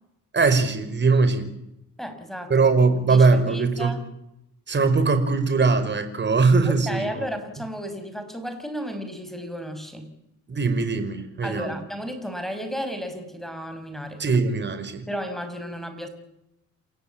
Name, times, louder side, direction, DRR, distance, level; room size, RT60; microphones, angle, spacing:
voice 1, 0.3-1.5 2.5-3.9 4.7-7.3 10.5-11.7 14.2-15.0, right 4 dB, 35° right, 10 dB, 4.9 m, -21 dB
voice 2, 2.0-2.7 3.1-4.0 6.6-10.1 11.4-14.2 15.1-16.1, equal, ahead, 8 dB, 5.9 m, -33 dB
29.0 x 16.0 x 8.7 m, 0.83 s
cardioid pair, 90°, 30 cm